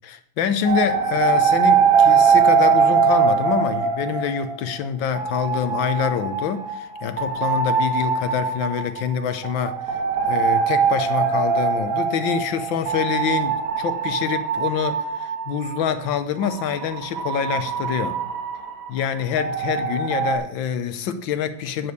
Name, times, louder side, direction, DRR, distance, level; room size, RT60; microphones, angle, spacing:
voice 1, 0.0-9.8 10.3-18.2 18.9-21.9, left 8 dB, 70° left, 1.5 m, -26 dB
sound 1, 0.6-4.8 5.2-15.8 16.4-20.4, right 6 dB, 70° right, 2.3 m, -22 dB
9.6 x 5.2 x 7.9 m
omnidirectional pair, 2.3 m